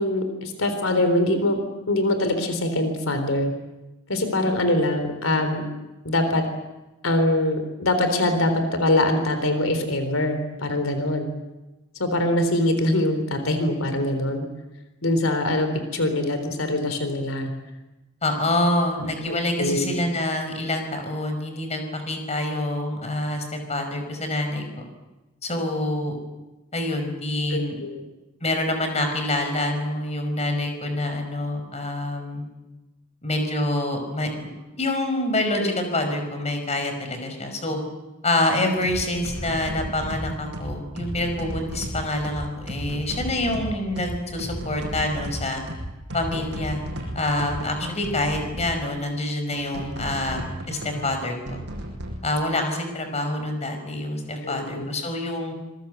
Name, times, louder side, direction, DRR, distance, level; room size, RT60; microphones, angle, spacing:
voice 1, 0.0-1.6 1.9-3.5 4.1-5.6 6.1-6.4 7.0-11.3 12.0-14.5 15.0-17.5 19.0-19.9 27.5-28.0 35.6-35.7 36.1-36.2 54.4-54.9, left 1 dB, 80° left, 8 dB, 3.7 m, -23 dB
voice 2, 18.2-24.8 25.4-26.2 26.7-27.8 28.4-32.4 33.2-34.3 34.8-37.8 38.2-45.6 46.1-46.8 47.2-51.6 52.2-55.5, left 1 dB, 35° left, 6 dB, 5.5 m, -26 dB
sound 1, 38.7-48.8 49.5-52.2, equal, 55° right, 6.8 m, -34 dB
26.5 x 22.5 x 8.2 m, 1.1 s
head